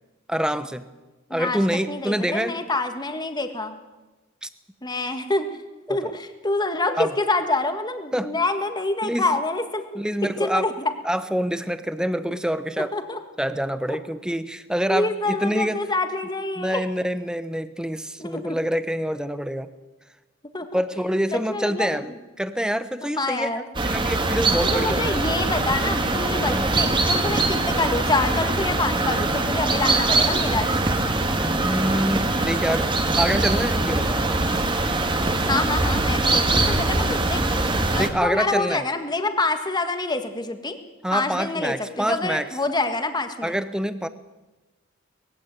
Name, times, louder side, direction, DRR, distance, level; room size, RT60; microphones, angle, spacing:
voice 1, 0.3-0.9 1.3-2.6 4.4-4.5 5.9-6.1 7.0-7.1 8.1-8.3 9.0-9.3 9.9-10.7 11.0-12.9 13.4-15.8 16.6-19.7 20.7-23.5 23.8-25.2 26.5-26.8 30.1-30.3 31.4-34.2 37.9-38.8 41.0-42.5 43.4-44.1, equal, 5° right, 12 dB, 0.9 m, -26 dB
voice 2, 1.9-3.8 4.8-5.5 5.9-10.0 10.4-10.7 12.8-13.2 13.9-14.0 14.9-16.8 18.2-18.6 20.5-20.8 21.3-22.0 23.2-23.6 24.6-30.7 35.5-40.8 41.1-43.6, left 2 dB, 20° left, 7 dB, 1.7 m, -26 dB
sound 1, 23.7-38.1, right 2 dB, 25° right, 1.7 m, -22 dB
20.5 x 15.5 x 9.2 m, 1.1 s
head